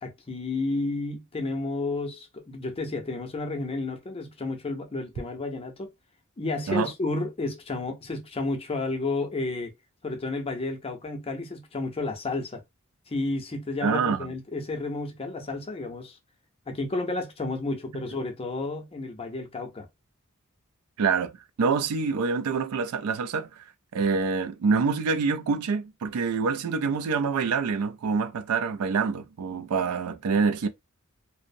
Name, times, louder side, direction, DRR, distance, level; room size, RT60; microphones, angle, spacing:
voice 1, 0.0-5.9 6.4-9.7 10.0-12.6 13.1-16.2 16.7-19.9, left 2 dB, 25° left, 0.5 m, -31 dB
voice 2, 13.8-14.3 21.0-21.3 21.6-23.5 23.9-30.7, right 5 dB, 85° right, 0.4 m, -26 dB
2.5 x 2.0 x 2.5 m
head